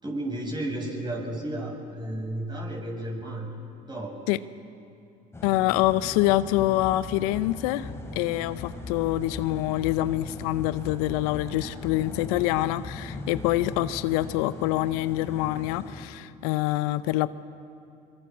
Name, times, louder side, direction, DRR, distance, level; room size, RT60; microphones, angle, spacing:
voice 1, 0.0-3.5 3.8-4.2, right 1 dB, 20° right, 0 dB, 7.2 m, -33 dB
sound 1, 5.3-16.1, left 1 dB, 15° left, 3.4 m, -41 dB
voice 2, 5.4-17.3, left 16 dB, 70° left, 14 dB, 0.7 m, -26 dB
sound 2, 5.8-13.8, left 3 dB, 45° left, 3.5 m, -41 dB
25.0 x 23.0 x 6.2 m, 2.6 s
hypercardioid pair, 70°, 20 cm